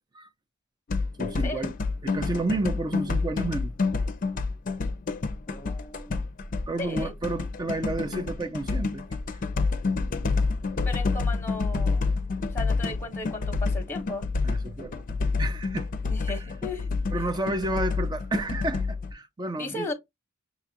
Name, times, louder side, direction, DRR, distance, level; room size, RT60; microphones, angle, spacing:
sound 1, 0.9-19.1, left 4 dB, 40° left, 0.5 m, -28 dB
voice 1, 1.2-1.7 2.0-3.7 6.7-9.0 14.4-15.9 16.3-16.4 17.1-19.9, right 2 dB, 20° right, 0.4 m, -31 dB
voice 2, 5.5-6.3 6.8-7.1 10.8-12.1 12.5-14.3 16.1-17.3 19.6-19.9, left 2 dB, 10° left, 0.8 m, -36 dB
5.8 x 2.4 x 2.8 m
head